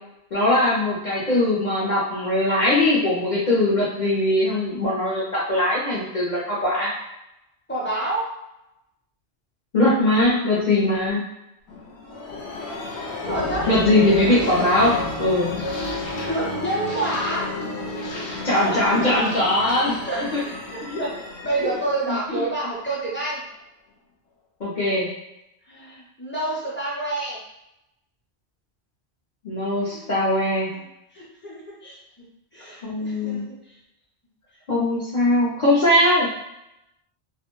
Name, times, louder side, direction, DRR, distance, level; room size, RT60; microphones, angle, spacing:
voice 1, 0.3-6.9 9.7-11.2 13.7-15.5 18.4-20.0 20.3-20.4 20.8-20.9 21.6-21.7 22.1-22.4 24.6-25.1 29.4-30.7 32.8-33.4 34.7-36.3, left 1 dB, 50° left, -8 dB, 0.7 m, -21 dB
voice 2, 7.7-8.3 13.3-13.7 16.1-17.5 18.6-19.1 19.8-23.5 25.7-27.4 29.8-30.0 30.7-30.8 31.1-32.3 32.5-33.4 33.7-33.8, right 2 dB, 15° left, -7 dB, 0.5 m, -29 dB
sound 1, 11.7-23.2, left 2 dB, 70° left, 0.9 m, -32 dB
2.4 x 2.1 x 3.0 m, 0.85 s
omnidirectional pair, 1.1 m